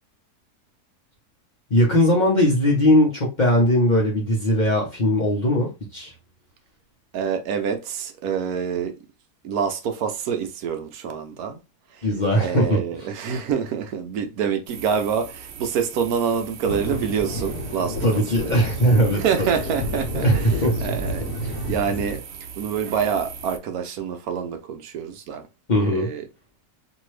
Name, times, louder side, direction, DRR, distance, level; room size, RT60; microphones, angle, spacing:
voice 1, 1.7-6.1 12.0-12.8 18.0-19.5 20.2-20.7 25.7-26.1, equal, 40° left, 0.8 m, -19 dB
voice 2, 7.1-8.9 9.4-11.6 12.0-12.1 12.4-18.5 19.2-20.5 20.8-22.2 22.6-25.4 25.8-26.2, right 7 dB, 75° right, 1.0 m, -26 dB
sound 1, 14.7-23.6, right 7 dB, 90° right, 0.5 m, -40 dB
sound 2, 16.6-22.2, equal, 75° left, 1.3 m, -29 dB
2.8 x 2.6 x 3.1 m
omnidirectional pair, 1.7 m